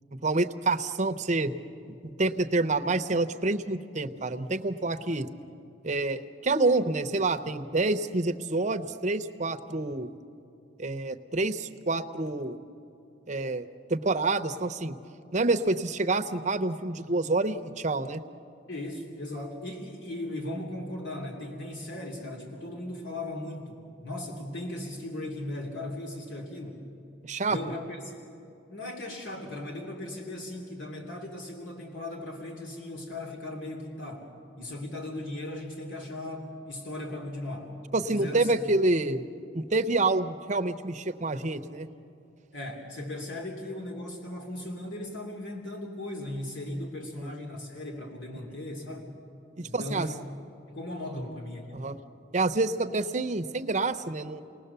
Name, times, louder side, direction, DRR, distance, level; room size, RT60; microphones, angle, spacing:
voice 1, 0.1-1.5 1.9-5.3 5.8-10.1 10.8-12.6 13.3-15.0 15.3-18.2 27.2-27.6 37.9-39.2 39.5-41.9 47.2-47.3 48.5-48.6 49.6-50.1 51.7-52.0 52.3-54.4, right 2 dB, 40° right, 8 dB, 0.8 m, -28 dB
voice 2, 18.7-26.8 27.5-28.1 28.7-34.3 34.6-37.7 38.1-38.5 42.5-49.1 49.6-50.1 50.7-51.7, left 1 dB, 80° left, 0 dB, 2.9 m, -37 dB
29.5 x 19.5 x 6.9 m, 2.7 s
head